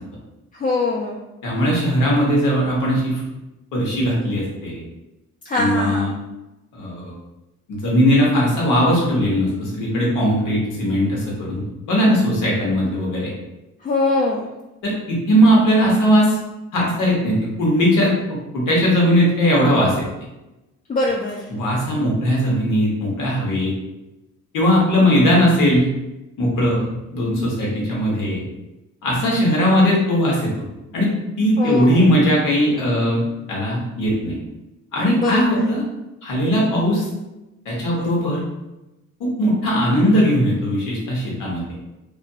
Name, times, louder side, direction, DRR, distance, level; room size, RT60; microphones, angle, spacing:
voice 1, 0.6-1.2 5.5-6.1 13.8-14.5 20.9-21.4 31.6-32.0 35.2-35.6, left 3 dB, 30° left, -2 dB, 0.3 m, -22 dB
voice 2, 1.4-3.2 3.7-4.8 5.6-6.1 6.7-7.1 7.7-13.3 14.8-16.4 16.7-20.0 21.5-23.7 24.5-25.9 26.4-28.4 29.0-30.5 30.9-31.1 31.4-34.4 34.9-35.8 36.2-37.1 37.6-38.4 39.2-41.6, equal, 90° left, -3 dB, 0.9 m, -19 dB
2.6 x 2.4 x 2.3 m, 0.98 s
cardioid pair, 90°, 30 cm